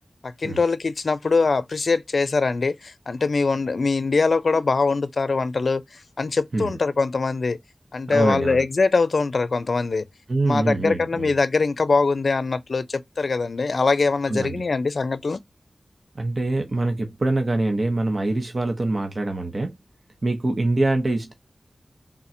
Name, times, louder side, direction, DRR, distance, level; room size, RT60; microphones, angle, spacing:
voice 1, 0.2-7.6 7.9-10.0 10.4-15.4, left 4 dB, 70° left, 0.5 m, -22 dB
voice 2, 8.1-8.7 10.3-11.3 14.3-14.6 16.1-19.7 20.2-21.3, right 2 dB, 45° right, 1.0 m, -24 dB
3.7 x 2.5 x 4.3 m
wide cardioid pair, 85°, 0 cm